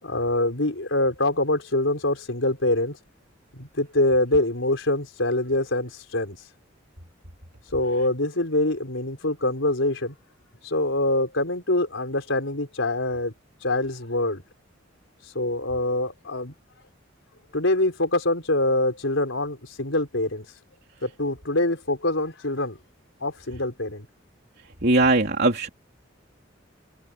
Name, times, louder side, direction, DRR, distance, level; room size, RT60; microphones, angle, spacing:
voice 1, 0.0-3.0 3.5-6.4 7.7-10.1 10.6-13.3 13.6-14.4 15.3-16.5 17.5-20.4 21.0-22.8 23.2-24.1, left 2 dB, 80° left, 4.4 m, -24 dB
voice 2, 24.8-25.7, right 2 dB, 55° right, 3.3 m, -20 dB
head